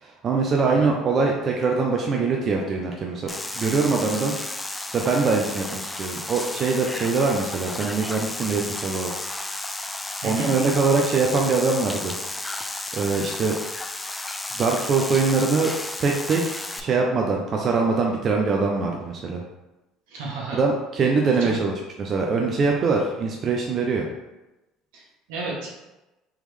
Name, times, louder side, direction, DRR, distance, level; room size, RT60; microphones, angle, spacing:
voice 1, 0.0-4.3 4.9-9.1 10.2-12.1 12.9-13.5 14.6-15.7 16.0-16.4 16.8-19.4 20.5-21.7 22.0-24.1, right 4 dB, 45° right, 0 dB, 0.5 m, -23 dB
sound 1, 3.3-16.8, left 2 dB, 10° left, 0.3 m, -33 dB
voice 2, 20.1-20.6 21.4-21.6 24.9-25.7, right 3 dB, 80° right, -3 dB, 1.1 m, -33 dB
3.5 x 3.0 x 3.2 m, 1.0 s
supercardioid pair, 80°, 0 cm